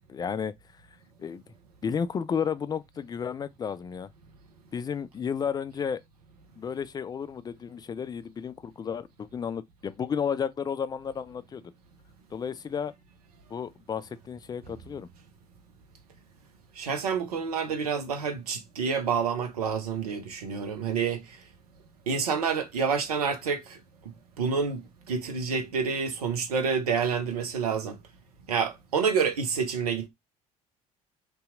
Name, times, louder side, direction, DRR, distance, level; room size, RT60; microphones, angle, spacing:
voice 1, 0.1-0.5 1.2-1.4 1.8-4.1 4.7-6.0 6.6-11.6 12.3-12.9 13.5-15.1, left 7 dB, 20° left, 0.3 m, -32 dB
voice 2, 16.8-21.2 22.1-23.8 24.4-28.0 28.5-30.1, right 6 dB, 80° right, 0.6 m, -28 dB
2.8 x 2.3 x 3.7 m
figure-of-eight pair, 55°, 19 cm